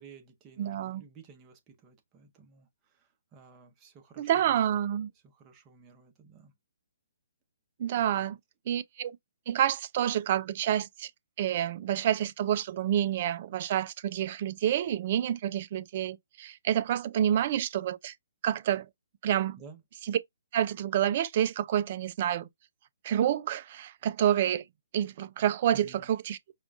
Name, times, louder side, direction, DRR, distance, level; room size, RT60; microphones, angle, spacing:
voice 1, 0.0-4.8 5.2-6.5 8.0-8.3 19.6-19.8 25.7-26.1, right 5 dB, 25° right, 0.9 m, -53 dB
voice 2, 0.6-1.0 4.2-5.1 7.8-8.4 8.7-9.1 9.5-11.1 11.4-18.1 18.4-18.9 19.2-19.6 20.1-20.2 20.5-22.5 23.0-24.6 24.9-26.4, right 10 dB, 45° right, 0.3 m, -28 dB
4.8 x 2.3 x 2.5 m
hypercardioid pair, 140°, 0 cm